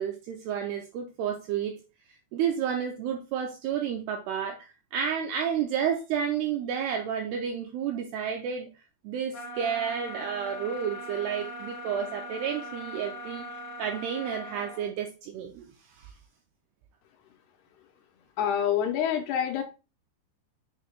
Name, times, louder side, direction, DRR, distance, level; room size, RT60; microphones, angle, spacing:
voice 1, 0.0-1.8 2.3-8.7 9.0-13.5 13.8-15.7 15.9-16.1, right 8 dB, 90° right, 2.3 m, -31 dB
sound 1, 9.3-14.9, left 1 dB, 50° left, 2.8 m, -40 dB
voice 2, 18.4-19.6, left 9 dB, 85° left, 2.4 m, -26 dB
7.2 x 6.4 x 2.3 m
omnidirectional pair, 5.4 m